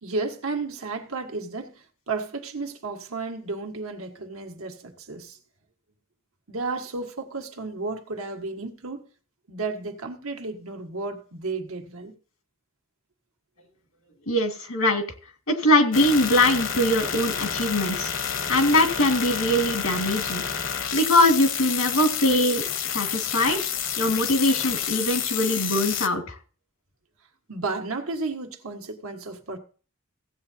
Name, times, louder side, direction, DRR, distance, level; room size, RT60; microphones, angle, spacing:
voice 1, 0.0-5.4 6.5-9.0 9.5-12.1 27.5-29.6, right 3 dB, 90° right, 1.5 m, -33 dB
voice 2, 14.3-15.0 15.5-18.1 18.5-20.4 20.9-22.6 22.9-23.6 24.0-26.4, left 1 dB, 85° left, 2.0 m, -22 dB
sound 1, 15.9-26.1, left 8 dB, 65° left, 0.9 m, -29 dB
16.5 x 8.3 x 2.7 m
head